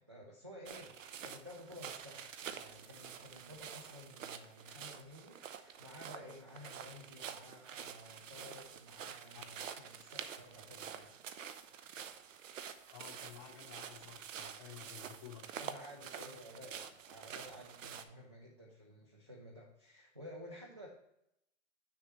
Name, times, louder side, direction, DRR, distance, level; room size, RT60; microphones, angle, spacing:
voice 1, 0.0-11.2 13.9-14.0 15.6-20.9, left 1 dB, 25° right, -1 dB, 0.3 m, -53 dB
sound 1, 0.7-18.0, right 8 dB, 80° right, 0.8 m, -48 dB
voice 2, 12.9-15.4, left 10 dB, 20° left, 0 dB, 0.7 m, -53 dB
8.0 x 6.6 x 3.0 m, 0.81 s
hypercardioid pair, 175°, 38 cm